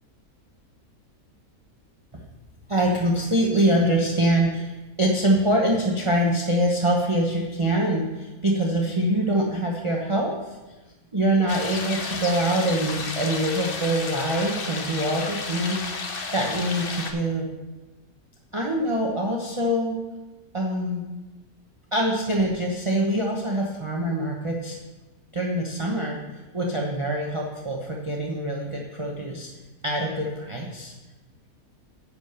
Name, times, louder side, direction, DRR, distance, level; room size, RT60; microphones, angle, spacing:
voice 1, 2.7-4.7 5.0-10.5 11.1-15.9 16.3-17.5 18.5-20.0 20.5-21.0 21.9-24.8 25.3-29.5 29.8-30.9, right 1 dB, 25° right, -2 dB, 0.9 m, -24 dB
sound 1, 11.5-17.1, left 4 dB, 45° left, 1.0 m, -32 dB
10.0 x 5.0 x 6.7 m, 1.1 s
omnidirectional pair, 1.6 m